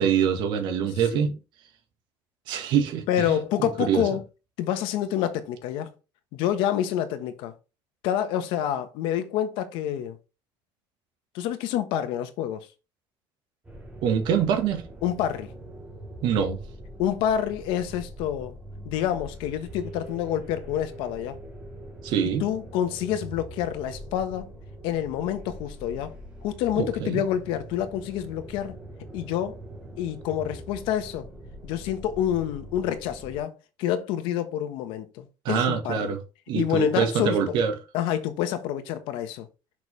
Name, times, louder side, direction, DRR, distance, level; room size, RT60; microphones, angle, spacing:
voice 1, 0.0-1.3 2.5-4.1 14.0-14.8 16.2-16.6 22.0-22.4 26.8-27.2 35.5-36.2 36.5-37.7, right 7 dB, 65° right, 1.9 m, -25 dB
voice 2, 3.1-4.2 4.6-5.9 6.3-7.5 8.0-10.2 11.3-12.7 15.0-15.5 17.0-18.6 18.8-21.4 22.2-24.5 24.8-28.8 29.1-29.6 30.0-31.3 31.6-36.2 36.5-37.6 37.9-39.5, left 10 dB, 85° left, 1.3 m, -28 dB
sound 1, 13.6-33.4, right 1 dB, 15° right, 3.3 m, -43 dB
6.5 x 6.0 x 3.5 m
cardioid pair, 160°, 8 cm